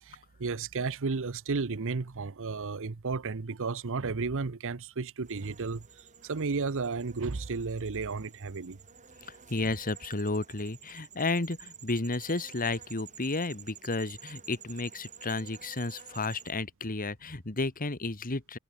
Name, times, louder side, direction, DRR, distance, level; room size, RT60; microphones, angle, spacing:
voice 1, 0.0-8.8, right 4 dB, 60° right, 0.8 m, -33 dB
sound 1, 5.2-16.5, right 8 dB, 35° right, 5.0 m, -51 dB
voice 2, 9.2-18.6, left 3 dB, 40° left, 1.7 m, -32 dB
head